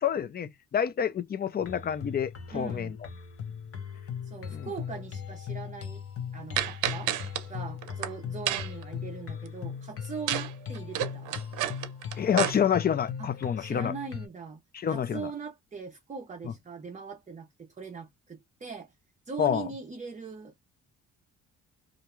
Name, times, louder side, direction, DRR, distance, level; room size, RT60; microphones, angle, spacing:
voice 1, 0.0-3.0 4.5-4.7 12.2-13.9 14.7-15.3 19.4-19.7, left 8 dB, 30° left, 0.4 m, -28 dB
sound 1, 1.6-14.3, left 7 dB, 50° left, 0.8 m, -39 dB
voice 2, 2.5-2.9 4.2-6.0 6.3-7.1 7.5-11.4 13.2-13.3 13.6-14.6 14.9-18.9 19.3-20.6, right 5 dB, 25° right, 0.6 m, -41 dB
sound 2, 6.6-7.4 7.8-8.1 8.5-8.8 10.3-10.5 10.7-12.5, right 11 dB, 85° right, 0.6 m, -30 dB
2.5 x 2.1 x 2.9 m
cardioid pair, 90°, 30 cm